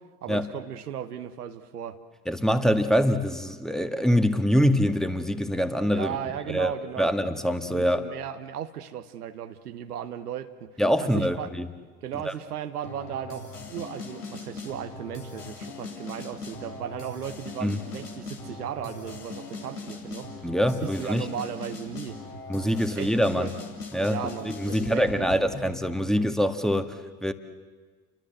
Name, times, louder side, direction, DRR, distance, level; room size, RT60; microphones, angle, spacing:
voice 1, 0.0-2.0 5.9-7.1 7.6-10.7 11.0-11.5 12.0-20.3 20.8-22.2 22.9-23.5 24.1-25.5, right 9 dB, 80° right, 9 dB, 1.3 m, -36 dB
voice 2, 2.3-6.1 6.5-8.0 10.8-11.7 12.2-12.3 17.6-17.8 20.4-21.3 22.5-23.5 23.9-27.3, equal, ahead, 7 dB, 1.8 m, -24 dB
sound 1, 12.8-25.8, left 3 dB, 85° left, 3.6 m, -40 dB
29.5 x 24.0 x 7.8 m, 1.5 s
figure-of-eight pair, 60°, 46 cm